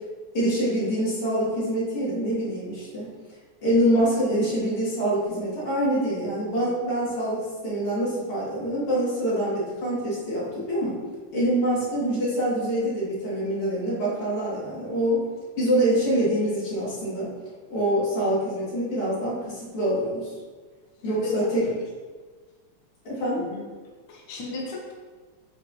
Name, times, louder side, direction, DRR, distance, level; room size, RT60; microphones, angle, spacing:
voice 1, 0.3-3.1 3.6-11.0 11.3-15.2 15.6-17.3 17.7-20.3 21.0-21.7 23.0-23.4, right 1 dB, 75° left, -8 dB, 3.1 m, -25 dB
voice 2, 21.0-21.5 23.4-23.6 24.1-24.9, left 2 dB, 60° left, -2 dB, 1.3 m, -34 dB
8.2 x 4.8 x 2.8 m, 1.5 s
omnidirectional pair, 2.4 m